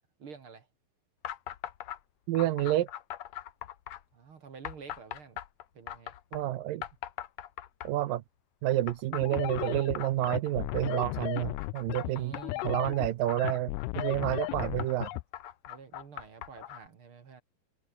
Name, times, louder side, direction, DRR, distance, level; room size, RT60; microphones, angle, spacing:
voice 1, 0.2-0.7 4.1-5.4 5.7-6.1 11.9-12.8 15.7-17.4, right 5 dB, 45° right, 2.2 m, -49 dB
sound 1, 1.2-2.0 2.4-4.0 4.6-6.4 6.8-8.1 8.9-12.7 13.3-16.9, left 12 dB, 65° left, 1.9 m, -41 dB
voice 2, 2.3-2.9 6.3-6.8 7.8-8.2 8.6-12.4 12.6-15.1, right 14 dB, 75° right, 2.4 m, -29 dB
sound 2, 9.2-15.2, left 23 dB, 85° left, 2.4 m, -35 dB
omnidirectional pair, 4.3 m